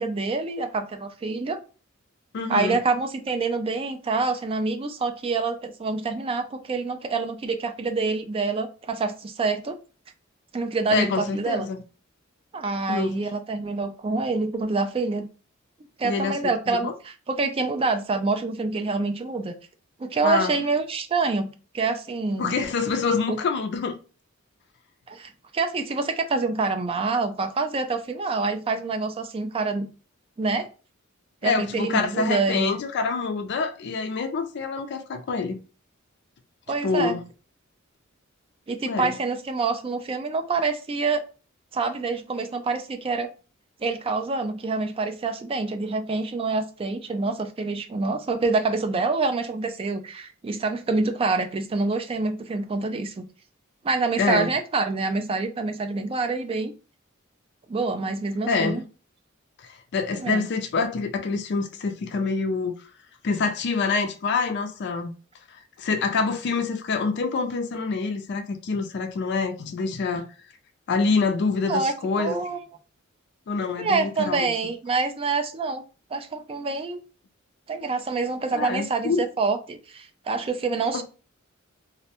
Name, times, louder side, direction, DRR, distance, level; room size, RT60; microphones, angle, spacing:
voice 1, 0.0-1.6 2.5-9.8 10.5-11.7 12.5-15.3 16.0-16.9 17.3-19.5 20.0-22.5 23.3-23.4 25.1-29.9 30.4-30.7 31.4-32.8 36.7-37.2 38.7-41.2 41.7-43.3 43.8-53.3 53.8-56.7 57.7-58.8 60.2-60.5 71.7-72.6 73.8-75.8 76.1-77.0 77.7-81.0, right 3 dB, 25° right, 0.3 m, -26 dB
voice 2, 2.3-2.8 10.9-11.8 12.9-13.2 16.0-16.9 20.2-20.5 22.4-23.9 31.4-35.6 36.8-37.2 38.9-39.2 54.2-54.5 58.5-58.8 59.6-62.9 63.2-65.1 65.5-70.3 70.9-72.4 73.5-74.5 78.5-79.3 80.9-81.0, left 4 dB, 55° left, 0.4 m, -26 dB
2.5 x 2.1 x 2.8 m
head